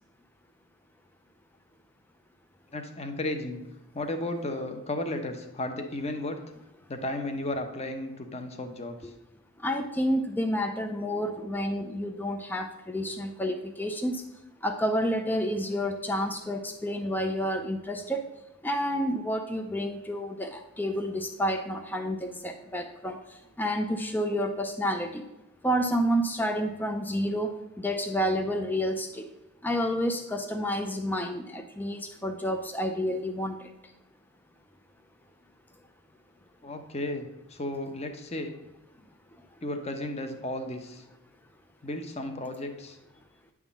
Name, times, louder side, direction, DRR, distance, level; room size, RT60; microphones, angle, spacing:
voice 1, 2.7-3.6 3.9-6.4 6.9-9.1 36.6-38.5 39.6-41.0 41.8-43.0, left 1 dB, 30° left, 6 dB, 0.8 m, -34 dB
voice 2, 9.6-14.2 14.6-18.3 18.6-25.2 25.6-29.3 29.6-33.7, equal, 10° left, 5 dB, 0.4 m, -29 dB
9.7 x 3.6 x 7.1 m, 0.95 s
head